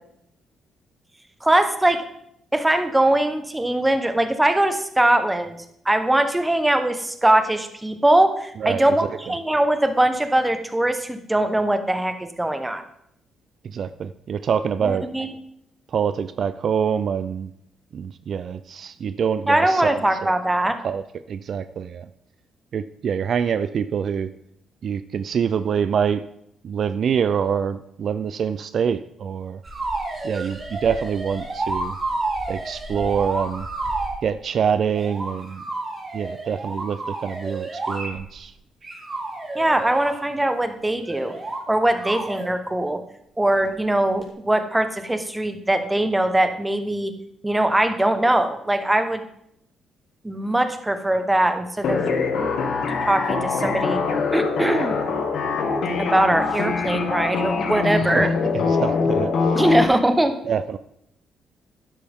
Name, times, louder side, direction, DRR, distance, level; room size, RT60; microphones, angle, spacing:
voice 1, 1.4-2.0 2.5-5.6 5.8-12.8 14.8-15.3 19.5-20.8 39.5-41.3 41.7-43.0 43.4-47.1 47.4-49.2 50.2-52.0 53.0-54.0 54.3-55.0 56.0-58.3 59.5-60.3, right 1 dB, 10° right, 8 dB, 1.2 m, -21 dB
voice 2, 8.6-9.3 13.6-15.1 15.9-17.5 17.9-20.3 20.8-22.1 22.7-24.3 24.8-26.2 26.6-29.6 30.2-32.0 32.5-33.7 34.2-35.6 36.1-38.5 58.1-59.6 60.5-60.8, right 7 dB, 55° right, 12 dB, 0.4 m, -25 dB
sound 1, 29.6-34.2 34.9-38.4 38.8-40.2 41.0-41.6 41.9-42.5 44.2-44.3, right 2 dB, 35° right, 3.5 m, -30 dB
sound 2, 51.8-59.8, left 4 dB, 70° left, 1.8 m, -23 dB
12.5 x 10.0 x 3.7 m, 0.75 s
cardioid pair, 90°, 0 cm